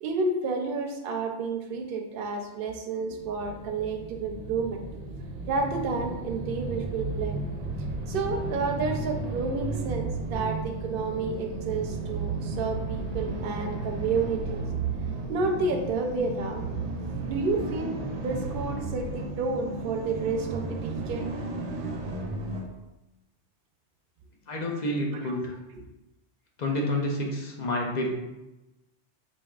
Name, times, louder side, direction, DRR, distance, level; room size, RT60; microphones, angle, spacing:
voice 1, 0.0-4.8 5.5-7.5 8.1-14.6 15.3-16.6 17.2-21.3, right 3 dB, 60° right, 3 dB, 0.7 m, -30 dB
sound 1, 3.2-22.7, right 3 dB, 85° right, 0.9 m, -34 dB
voice 2, 24.5-25.5 26.6-28.1, left 1 dB, 50° left, -1 dB, 0.6 m, -29 dB
4.4 x 2.8 x 2.3 m, 0.98 s
omnidirectional pair, 1.1 m